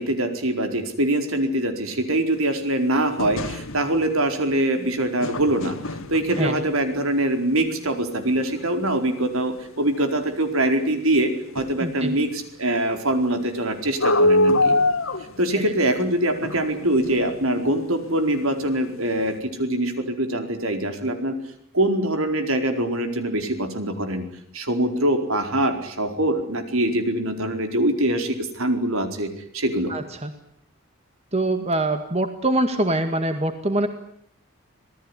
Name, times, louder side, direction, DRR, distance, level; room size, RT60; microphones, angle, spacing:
voice 1, 0.0-5.8 6.1-14.7 15.4-21.4 21.7-24.2 24.5-29.9, right 1 dB, 75° right, 6 dB, 4.6 m, -23 dB
sound 1, 3.2-4.1 5.2-6.9 8.9-9.0 9.6-9.7 10.0-10.1 10.3-10.4 11.6-11.9 14.0-15.6 16.4-17.7 18.2-18.3 18.6-18.7 19.1-19.3, left 1 dB, 70° left, 2.1 m, -23 dB
voice 2, 11.8-12.1 15.6-15.7 29.9-30.3 31.3-33.9, right 1 dB, 30° right, 7 dB, 2.0 m, -24 dB
26.5 x 19.0 x 9.9 m, 0.67 s
head